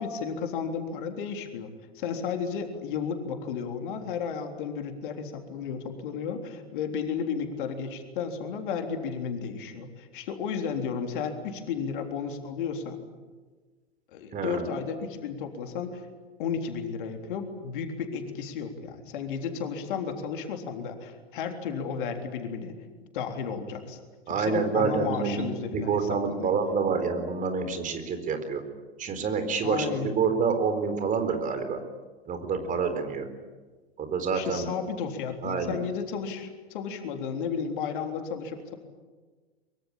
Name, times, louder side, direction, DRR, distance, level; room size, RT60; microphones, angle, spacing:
voice 1, 0.0-13.0 14.1-16.1 16.4-22.8 23.1-24.0 24.3-26.5 29.6-30.2 34.3-38.8, left 6 dB, 55° left, 4 dB, 3.6 m, -33 dB
voice 2, 14.3-14.7 24.3-25.4 25.7-28.6 29.0-29.9 30.2-31.8 32.3-33.3 34.0-34.6 35.4-35.8, right 5 dB, 25° right, 8 dB, 4.2 m, -27 dB
24.0 x 23.5 x 8.8 m, 1.3 s
figure-of-eight pair, 95°, 31 cm